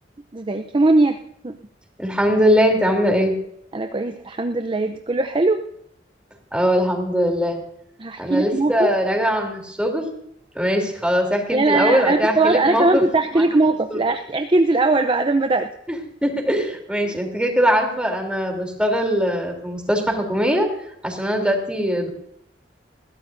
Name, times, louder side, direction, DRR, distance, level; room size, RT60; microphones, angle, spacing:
voice 1, 0.3-1.6 3.7-5.6 8.0-8.9 11.5-15.7 17.0-17.1, right 2 dB, 30° right, 6 dB, 0.7 m, -20 dB
voice 2, 2.0-3.3 6.5-7.6 8.2-10.1 10.5-13.0 13.3-13.4 13.9-14.0 16.2-20.7 21.0-22.1, equal, 5° right, 2 dB, 3.3 m, -21 dB
21.0 x 16.5 x 2.7 m, 0.71 s
head